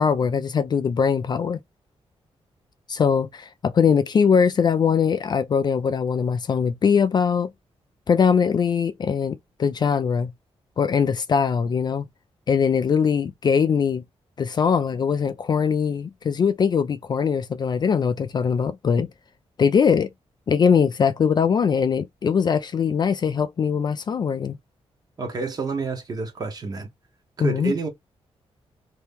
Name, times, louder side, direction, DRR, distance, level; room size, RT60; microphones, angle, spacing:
voice 1, 0.0-1.6 2.9-7.5 8.1-10.3 10.8-12.0 12.5-14.0 14.4-19.1 19.6-20.1 20.5-24.6 27.4-27.7, left 6 dB, 40° left, 0.4 m, -21 dB
voice 2, 25.2-26.9 27.4-27.9, right 4 dB, 35° right, 1.0 m, -28 dB
2.8 x 2.7 x 3.4 m
wide cardioid pair, 150°, 11 cm